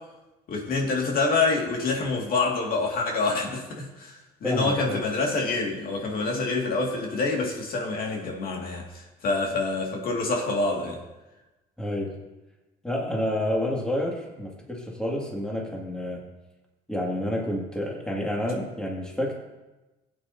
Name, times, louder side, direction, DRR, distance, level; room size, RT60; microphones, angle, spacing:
voice 1, 0.5-11.0, left 3 dB, 60° left, 0 dB, 2.1 m, -27 dB
voice 2, 4.4-5.0 11.8-12.1 12.8-16.2 16.9-19.3, left 1 dB, 5° left, -2 dB, 2.2 m, -29 dB
16.0 x 8.8 x 2.8 m, 1.1 s
cardioid pair, 110°, 17 cm